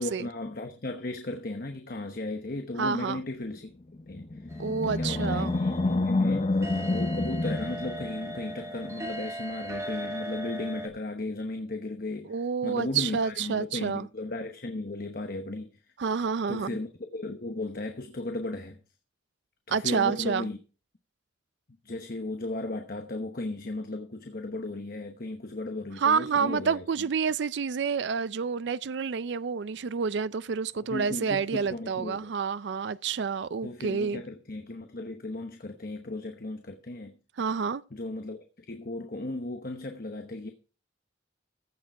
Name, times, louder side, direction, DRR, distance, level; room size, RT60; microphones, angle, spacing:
voice 1, 0.0-3.7 4.1-6.6 6.9-15.8 16.5-18.8 19.7-20.6 21.8-27.1 30.7-32.3 33.6-37.2 37.9-40.5, left 2 dB, 50° left, 1.0 m, -36 dB
voice 2, 2.8-3.2 4.6-5.6 12.3-14.1 16.0-16.8 19.7-20.5 26.0-34.2 37.4-37.8, right 6 dB, 65° right, 0.4 m, -29 dB
Animal, 4.0-8.5, left 2 dB, 30° left, 0.6 m, -28 dB
sound 1, 4.5-10.9, equal, 15° right, 1.9 m, -39 dB
15.0 x 6.7 x 4.7 m
head